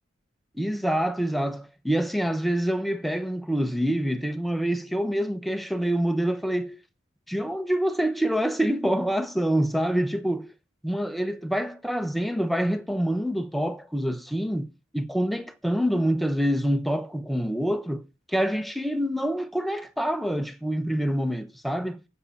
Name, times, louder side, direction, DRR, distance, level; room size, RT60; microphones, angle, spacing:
voice 1, 0.5-6.8 7.3-10.5 10.8-14.7 14.9-22.0, equal, ahead, 1.0 m, -26 dB
8.3 x 8.0 x 7.2 m
head